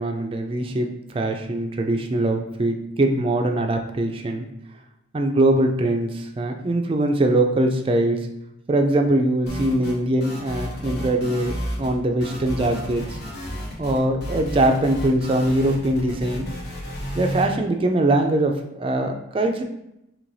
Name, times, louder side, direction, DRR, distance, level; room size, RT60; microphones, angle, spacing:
voice 1, 0.0-4.5 5.1-8.2 8.7-13.2 13.8-16.5 17.1-19.6, right 1 dB, 30° right, 4 dB, 0.3 m, -22 dB
sound 1, 9.5-10.0 10.2-11.9 12.2-17.5, equal, 55° left, 1.0 m, -32 dB
4.7 x 3.1 x 2.6 m, 0.86 s
head